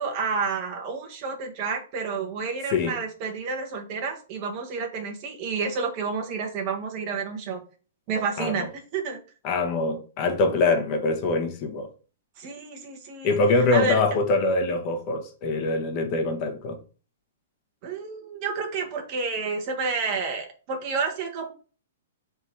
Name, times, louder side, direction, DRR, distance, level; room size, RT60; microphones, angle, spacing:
voice 1, 0.0-7.6 8.1-9.2 12.4-13.4 13.7-14.0 17.8-21.5, right 4 dB, 45° right, 1.1 m, -30 dB
voice 2, 9.4-11.9 13.2-16.8, left 3 dB, 40° left, 1.0 m, -24 dB
3.5 x 2.8 x 4.4 m
hypercardioid pair, 130°, 0 cm